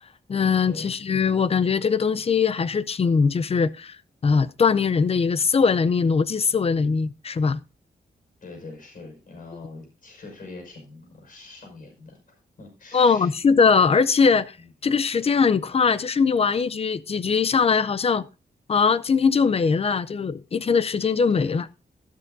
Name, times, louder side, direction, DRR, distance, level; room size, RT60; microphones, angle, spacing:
voice 1, 0.3-4.0 4.2-7.6 12.9-14.6 14.8-18.3 18.7-21.7, left 5 dB, 35° left, 0.5 m, -21 dB
voice 2, 8.4-13.3 14.6-14.7 21.3-21.6, left 3 dB, 55° left, 5.7 m, -43 dB
12.5 x 12.5 x 2.6 m
wide cardioid pair, 140°, 17 cm